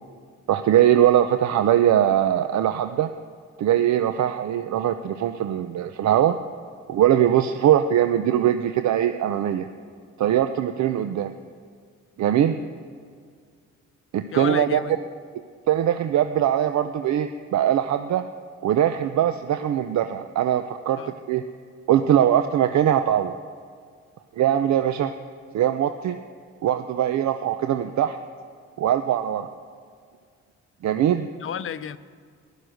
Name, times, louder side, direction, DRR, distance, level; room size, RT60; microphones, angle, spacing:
voice 1, 0.5-3.1 3.6-6.4 6.9-9.7 10.2-11.3 12.2-12.6 14.1-14.8 15.7-18.2 18.6-21.0 21.3-21.4 21.9-23.4 24.4-25.1 25.5-26.2 26.6-28.2 28.8-29.5 30.8-31.3, right 10 dB, 65° right, 9 dB, 0.7 m, -21 dB
voice 2, 14.3-15.0 21.0-21.1 31.4-32.0, left 8 dB, 45° left, 14 dB, 0.7 m, -32 dB
15.0 x 11.5 x 6.4 m, 2.1 s
cardioid pair, 90°, 30 cm